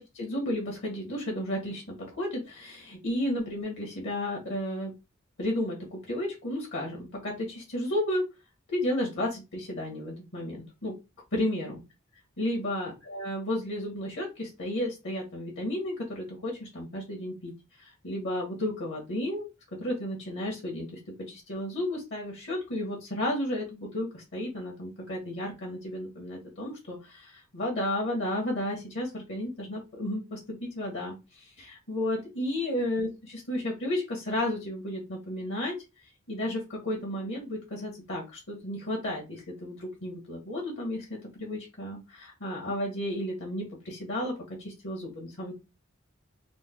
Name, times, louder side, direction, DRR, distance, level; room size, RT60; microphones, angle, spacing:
voice 1, 0.1-4.9 5.4-8.2 8.7-10.9 11.3-11.8 12.4-17.5 17.8-19.5 19.8-20.9 21.3-35.7 36.3-44.3 44.6-45.5, left 1 dB, 65° left, 0 dB, 1.1 m, -33 dB
3.2 x 2.1 x 3.4 m, 0.25 s
head